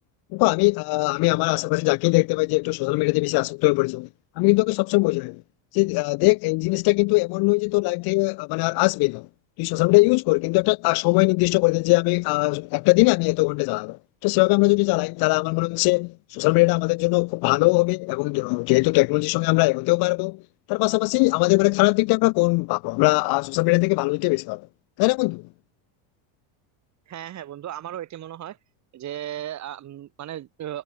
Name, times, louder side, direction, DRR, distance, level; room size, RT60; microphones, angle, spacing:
voice 1, 0.3-4.1 4.4-5.4 5.7-9.3 9.6-20.4 20.7-24.6 25.0-25.4, left 26 dB, 50° left, 0.7 m, -21 dB
voice 2, 27.1-28.6 28.9-30.8, right 12 dB, 35° right, 4.1 m, -35 dB
cardioid pair, 155°, 48 cm